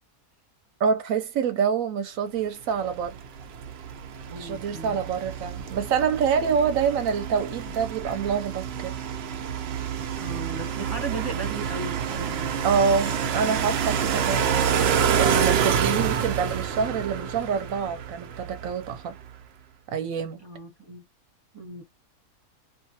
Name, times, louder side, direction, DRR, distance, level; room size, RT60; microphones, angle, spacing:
voice 1, 0.8-3.2 4.3-8.9 12.6-14.4 15.2-19.1 19.9-20.4, right 6 dB, 65° right, 0.9 m, -26 dB
sound 1, 2.8-19.0, right 7 dB, 85° right, 0.5 m, -28 dB
voice 2, 4.3-5.0 10.2-12.6 20.4-21.0 21.5-21.8, right 3 dB, 20° right, 0.9 m, -37 dB
2.4 x 2.4 x 2.7 m
omnidirectional pair, 1.7 m